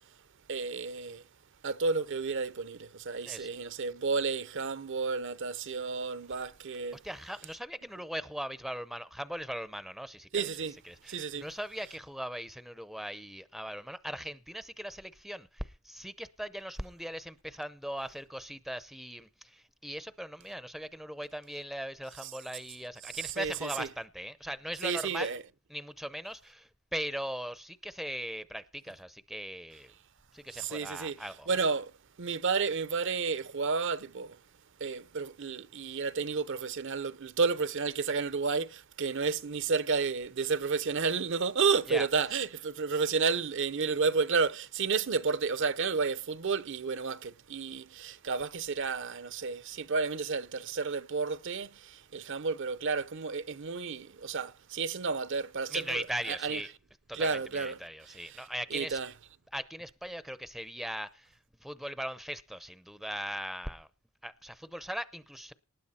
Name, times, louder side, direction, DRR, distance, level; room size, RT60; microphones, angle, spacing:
voice 1, 0.5-1.2 1.6-7.0 10.3-10.8 11.1-11.5 22.2-22.3 23.1-23.9 24.8-25.4 30.5-31.2 31.5-31.9 32.2-34.4 34.8-56.6 57.1-57.8 58.1-58.5 58.7-59.1, right 5 dB, 60° right, 0.7 m, -31 dB
voice 2, 7.0-10.5 10.8-25.3 25.7-29.9 30.3-31.5 41.9-42.1 55.7-56.7 57.1-59.0 59.5-63.9 64.2-65.5, equal, ahead, 0.6 m, -39 dB
19.0 x 10.5 x 4.3 m
head